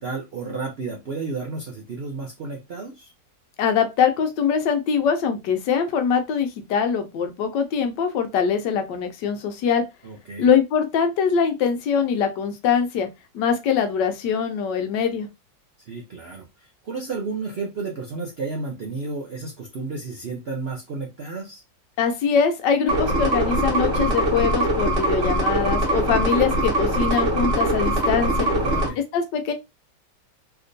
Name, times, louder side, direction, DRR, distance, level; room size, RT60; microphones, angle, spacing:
voice 1, 0.0-3.1 10.0-10.5 15.9-21.6 28.5-29.0, right 4 dB, 70° right, 0.6 m, -32 dB
voice 2, 3.6-9.8 10.4-13.1 13.3-15.3 22.0-28.5 29.0-29.5, left 7 dB, 80° left, 1.3 m, -23 dB
sound 1, 22.9-28.9, right 1 dB, 45° right, 0.9 m, -22 dB
3.4 x 2.8 x 2.6 m
omnidirectional pair, 1.9 m